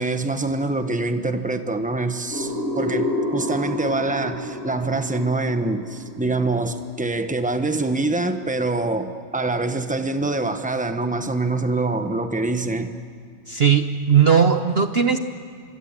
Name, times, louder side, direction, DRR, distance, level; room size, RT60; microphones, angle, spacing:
voice 1, 0.0-13.0, right 2 dB, 10° right, 8 dB, 0.5 m, -25 dB
sound 1, 2.3-7.0, left 1 dB, 40° right, 3.3 m, -29 dB
voice 2, 13.5-15.2, right 7 dB, 60° right, 8 dB, 0.6 m, -17 dB
25.0 x 24.5 x 8.8 m, 2.1 s
omnidirectional pair, 2.2 m